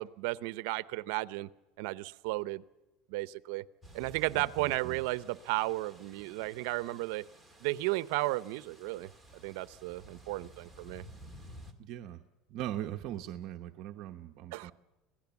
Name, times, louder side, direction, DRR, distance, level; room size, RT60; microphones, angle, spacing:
voice 1, 0.0-1.5 1.8-2.6 3.1-3.6 3.9-7.2 7.6-11.0 14.5-14.7, right 19 dB, 75° right, 16 dB, 0.8 m, -34 dB
sound 1, 3.8-11.7, equal, ahead, 2.3 m, -54 dB
voice 2, 4.3-5.0 11.8-12.2 12.5-14.7, right 12 dB, 50° right, 4 dB, 1.0 m, -40 dB
26.5 x 17.5 x 7.1 m, 1.1 s
cardioid pair, 155°, 0 cm